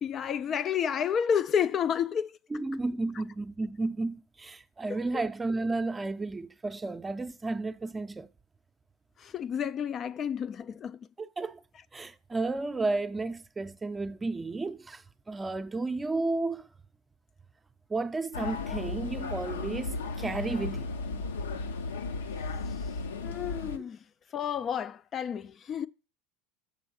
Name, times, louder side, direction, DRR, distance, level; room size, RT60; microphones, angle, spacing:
voice 1, 0.0-2.3 9.2-11.0 23.2-24.0 24.3-25.9, left 8 dB, 35° left, 0.3 m, -30 dB
voice 2, 2.5-8.3 11.2-11.6 11.9-16.7 17.9-20.9, right 3 dB, 15° right, 0.6 m, -32 dB
sound 1, 18.3-23.8, left 3 dB, 85° left, 0.7 m, -35 dB
6.9 x 5.4 x 6.2 m
hypercardioid pair, 85°, 0 cm